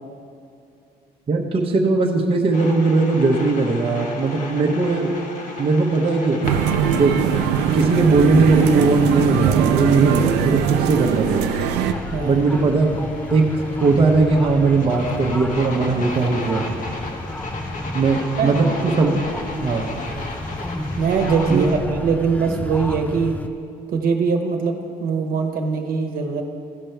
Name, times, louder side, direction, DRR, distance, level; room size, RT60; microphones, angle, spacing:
voice 1, 1.3-5.1 5.6-6.4 6.9-7.2 7.7-11.6 12.2-12.9 13.3-13.5 13.8-16.7 17.9-19.2 19.6-20.0 21.5-21.7, right 3 dB, 35° right, -1 dB, 0.9 m, -18 dB
sound 1, 2.5-21.8, left 2 dB, 50° left, 1.3 m, -35 dB
sound 2, 6.4-11.9, right 8 dB, 90° right, 0.5 m, -21 dB
sound 3, 11.9-23.5, left 1 dB, 10° left, 0.4 m, -32 dB
voice 2, 12.1-12.5 18.4-18.5 20.9-21.7 22.0-23.3 23.9-26.4, right 5 dB, 60° right, 4 dB, 1.1 m, -22 dB
15.5 x 5.2 x 4.6 m, 2.6 s
cardioid pair, 110°, 17 cm